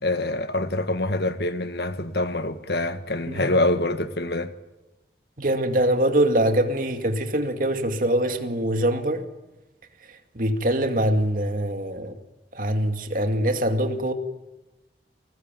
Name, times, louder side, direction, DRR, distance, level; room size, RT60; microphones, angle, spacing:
voice 1, 0.0-4.5, left 2 dB, 65° left, 1.8 m, -25 dB
voice 2, 5.4-9.3 10.1-12.2 12.5-14.1, right 1 dB, 50° right, 2.3 m, -23 dB
29.0 x 20.0 x 9.2 m
head